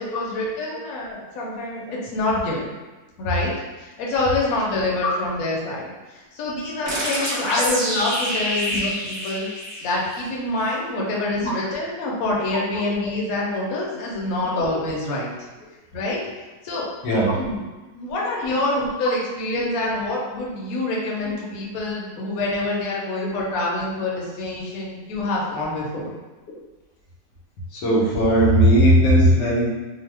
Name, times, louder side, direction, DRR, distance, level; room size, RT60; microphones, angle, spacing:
voice 1, 0.0-2.7 3.2-3.5 3.8-9.5 9.8-15.3 15.9-16.2 16.6-16.8 17.3-17.6 17.9-26.1, left 2 dB, 65° left, -4 dB, 1.0 m, -26 dB
sound 1, 6.9-10.3, equal, 50° right, 0.9 m, -27 dB
voice 2, 12.5-12.9 14.4-14.5 17.0-17.4 18.5-18.6 19.6-19.7 27.7-29.9, right 1 dB, 90° left, -4 dB, 1.3 m, -18 dB
2.9 x 2.1 x 3.2 m, 1.1 s
omnidirectional pair, 1.8 m